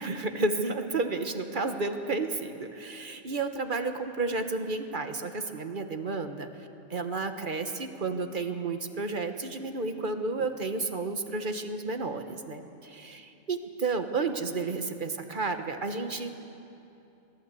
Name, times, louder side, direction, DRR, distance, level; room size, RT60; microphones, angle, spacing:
voice 1, 0.0-6.5 6.9-16.4, right 3 dB, 50° right, 7 dB, 1.3 m, -32 dB
22.5 x 15.5 x 8.3 m, 2.8 s
omnidirectional pair, 1.1 m